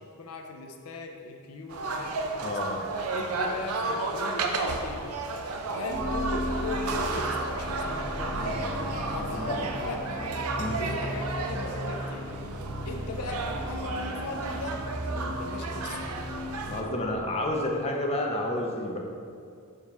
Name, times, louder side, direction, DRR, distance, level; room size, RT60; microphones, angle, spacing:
voice 1, 0.0-2.6 3.1-5.2 5.7-8.6 9.1-10.2 10.8-12.3 12.9-14.8 15.1-16.1, left 2 dB, 75° left, 3 dB, 0.5 m, -39 dB
sound 1, 1.7-16.8, right 3 dB, 75° right, 0.5 m, -33 dB
voice 2, 2.4-2.8 9.3-9.6 10.6-10.8 16.7-19.0, left 1 dB, 30° left, 0 dB, 0.5 m, -30 dB
sound 2, 5.9-17.8, equal, 5° right, 0.8 m, -37 dB
sound 3, 6.4-13.8, equal, 35° right, 1.4 m, -39 dB
5.1 x 4.6 x 4.2 m, 2.4 s
head